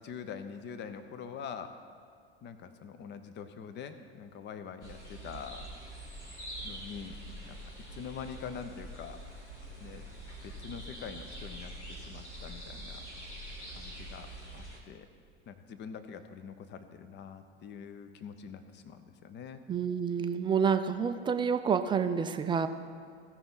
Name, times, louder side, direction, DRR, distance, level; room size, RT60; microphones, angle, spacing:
voice 1, 0.0-1.7 2.4-5.7 6.6-7.2 7.4-7.6 7.9-9.2 9.8-10.0 10.4-13.0 13.7-15.1 15.5-19.6, left 7 dB, 35° left, 10 dB, 0.8 m, -44 dB
sound 1, 4.8-14.8, right 1 dB, 85° left, 1.8 m, -45 dB
voice 2, 19.7-22.7, right 6 dB, 15° right, 9 dB, 0.4 m, -28 dB
16.0 x 5.9 x 4.0 m, 2.3 s
figure-of-eight pair, 75°, 33 cm